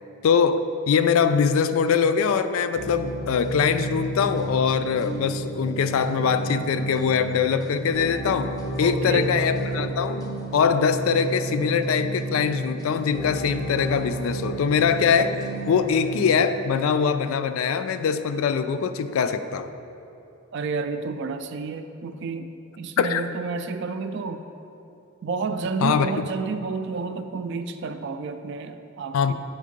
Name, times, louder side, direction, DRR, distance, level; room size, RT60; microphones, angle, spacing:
voice 1, 0.2-15.4 15.7-19.7 23.0-23.2 25.8-26.1 29.1-29.3, left 6 dB, 70° left, 11 dB, 0.3 m, -22 dB
sound 1, 2.8-16.4, right 2 dB, 15° left, 0.6 m, -32 dB
voice 2, 8.8-9.3 20.5-24.4 25.2-29.3, right 4 dB, 55° right, 9 dB, 0.3 m, -30 dB
8.5 x 3.7 x 5.1 m, 2.9 s
head